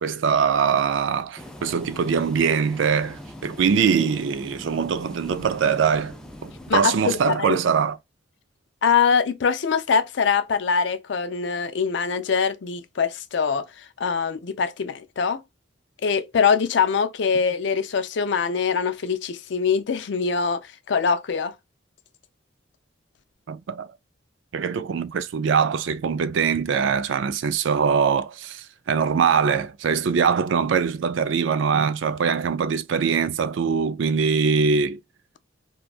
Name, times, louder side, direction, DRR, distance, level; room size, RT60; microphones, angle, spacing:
voice 1, 0.0-6.2 6.4-8.0 23.5-23.9 24.5-35.0, right 6 dB, 75° right, 0.4 m, -22 dB
sound 1, 1.4-6.8, left 1 dB, 5° left, 0.4 m, -41 dB
voice 2, 6.7-7.6 8.8-15.4 16.0-20.6 20.9-21.5, left 6 dB, 65° left, 0.4 m, -23 dB
2.7 x 2.3 x 2.3 m
head